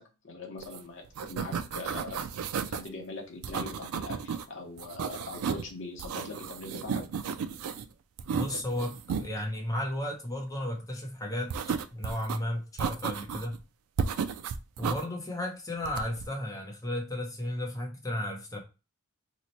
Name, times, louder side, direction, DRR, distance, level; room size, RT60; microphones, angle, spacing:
voice 1, 0.0-2.3 2.7-7.1, left 3 dB, 55° left, 0.8 m, -42 dB
sound 1, 0.6-0.8 1.0-2.9 3.4-4.4 4.8-5.7 6.0-7.8 8.2-9.3 11.5-12.4 12.8-13.6 14.0-15.0 15.8-16.3, right 6 dB, 80° right, 0.3 m, -33 dB
voice 2, 8.3-11.6 11.9-13.6 14.8-18.6, left 1 dB, 15° left, 0.7 m, -34 dB
2.9 x 2.1 x 4.0 m
head